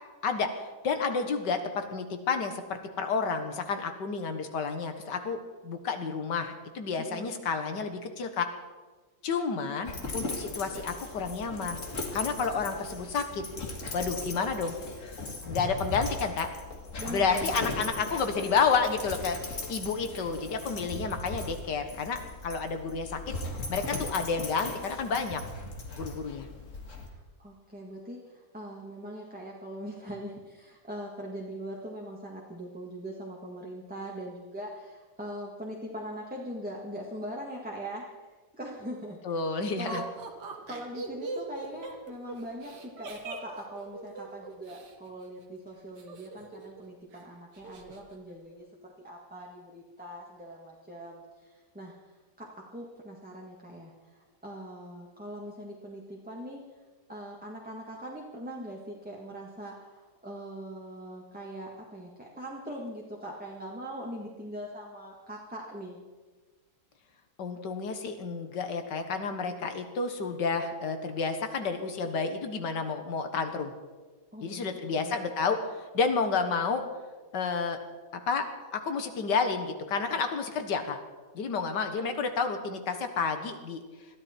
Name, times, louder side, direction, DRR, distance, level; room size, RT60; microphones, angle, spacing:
voice 1, 0.2-8.5 9.2-11.8 12.1-13.4 13.9-14.8 15.5-16.5 17.1-23.2 23.7-25.4 25.9-26.5 39.3-40.0 67.4-73.7 74.4-76.8 77.3-77.8 78.3-78.5 78.7-81.0 81.3-83.8, left 5 dB, 70° left, 7 dB, 1.9 m, -30 dB
voice 2, 7.0-7.4 9.7-10.2 17.0-17.8 27.1-38.1 38.6-39.2 39.8-40.1 40.7-51.9 52.4-56.6 57.1-66.0 74.3-75.2, equal, 5° right, -3 dB, 1.6 m, -41 dB
Dog, 9.9-27.1, left 2 dB, 45° left, 2.1 m, -38 dB
Laughter, 39.9-44.9 46.0-46.8 47.1-47.2 47.6-48.0, right 3 dB, 65° right, 2.2 m, -40 dB
21.0 x 14.0 x 4.4 m, 1.3 s
omnidirectional pair, 2.0 m